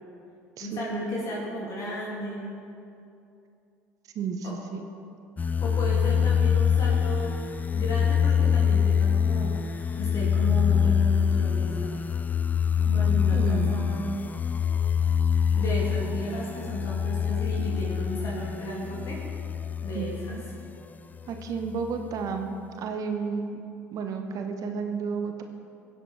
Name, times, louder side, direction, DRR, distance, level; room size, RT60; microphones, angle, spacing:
voice 1, 0.6-2.5 4.4-4.6 5.6-12.0 12.8-14.1 15.5-19.2 19.8-20.4, equal, 45° left, -4 dB, 2.4 m, -34 dB
voice 2, 4.1-4.8 13.3-13.8 19.9-20.4 21.3-22.5 22.8-23.6 23.9-25.4, right 5 dB, 50° right, 5 dB, 1.0 m, -32 dB
sound 1, 5.4-20.6 21.2-22.2, left 7 dB, 20° left, 0.4 m, -25 dB
16.5 x 7.6 x 3.3 m, 2.6 s
hypercardioid pair, 65°, 8 cm